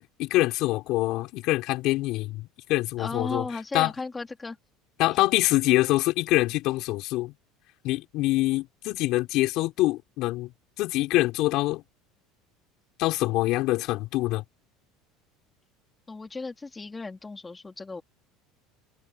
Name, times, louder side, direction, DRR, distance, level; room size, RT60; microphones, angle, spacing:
voice 1, 0.0-3.5 3.7-3.9 5.0-7.3 7.8-10.5 10.8-11.8 13.0-14.4, left 18 dB, 60° left, 5.3 m, -25 dB
voice 2, 3.0-4.6 5.1-5.2 16.1-18.0, left 3 dB, 15° left, 3.8 m, -35 dB
supercardioid pair, 125°, 0 cm